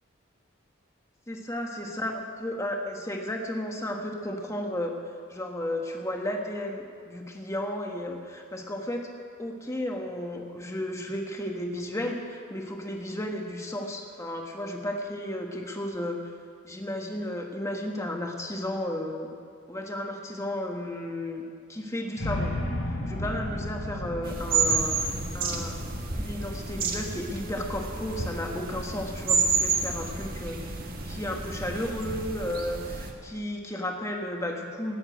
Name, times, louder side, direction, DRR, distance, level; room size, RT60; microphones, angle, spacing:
voice 1, 1.3-4.9 5.3-9.1 9.4-16.3 16.6-19.3 19.7-21.4 21.7-22.5 23.1-25.8 26.2-30.7 31.0-35.0, left 1 dB, 15° left, 1 dB, 1.4 m, -33 dB
sound 1, 22.2-28.3, left 1 dB, 70° left, 2.9 m, -35 dB
sound 2, 24.2-33.1, right 4 dB, 45° right, 1.5 m, -30 dB
17.0 x 7.3 x 9.0 m, 2.2 s
head